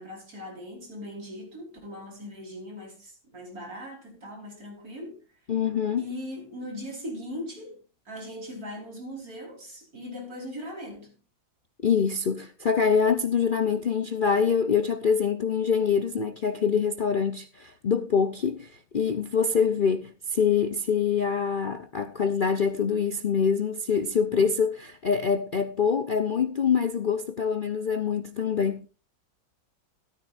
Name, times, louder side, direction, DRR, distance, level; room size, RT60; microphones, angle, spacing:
voice 1, 0.0-5.2 6.0-11.1, left 1 dB, 50° right, 5.0 m, -39 dB
voice 2, 5.5-6.0 11.8-28.8, left 6 dB, 80° left, 0.4 m, -25 dB
13.5 x 13.0 x 2.6 m
omnidirectional pair, 2.1 m